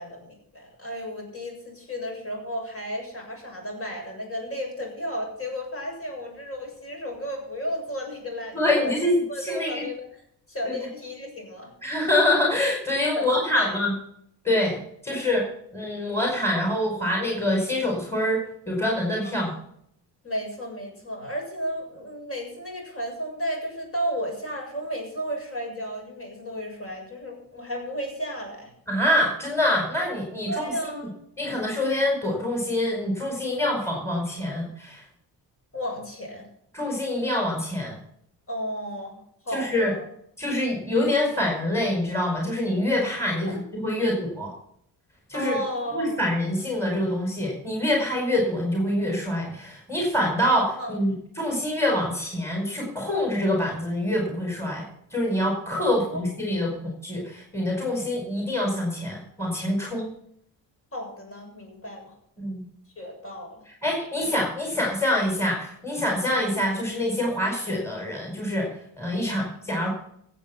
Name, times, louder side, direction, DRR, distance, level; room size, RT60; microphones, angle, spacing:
voice 1, 0.0-10.0 10.5-11.7 13.1-13.7 15.1-15.2 19.2-19.6 20.2-28.7 30.5-31.2 35.7-36.5 38.5-40.0 43.4-43.6 44.0-44.1 45.3-46.3 50.8-51.0 55.8-56.3 60.0-60.1 60.9-62.1 63.0-63.6 69.2-69.4, equal, 35° left, 1 dB, 7.2 m, -33 dB
voice 2, 8.5-9.8 10.6-10.7 11.8-13.9 14.4-14.8 15.0-15.4 15.7-18.4 18.7-19.5 28.9-30.9 31.4-35.0 36.7-38.0 39.5-39.9 40.4-43.5 43.7-44.5 45.3-45.6 45.9-54.9 55.1-60.1 62.4-62.6 63.8-68.7 69.0-69.9, left 1 dB, 5° left, -1 dB, 4.9 m, -25 dB
15.0 x 8.4 x 5.9 m, 0.69 s
cardioid pair, 95°, 37 cm